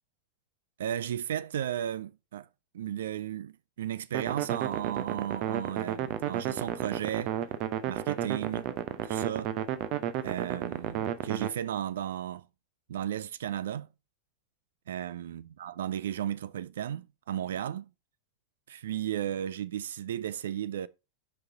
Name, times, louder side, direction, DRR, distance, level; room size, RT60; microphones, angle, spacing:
voice 1, 0.8-2.5 2.7-7.3 7.9-8.7 9.0-9.5 10.2-12.4 12.9-13.9 14.9-17.9 18.7-20.9, right 10 dB, 60° right, 0.3 m, -34 dB
sound 1, 4.1-11.5, right 11 dB, 40° right, 0.7 m, -32 dB
6.6 x 5.3 x 4.3 m
figure-of-eight pair, 90°, 0 cm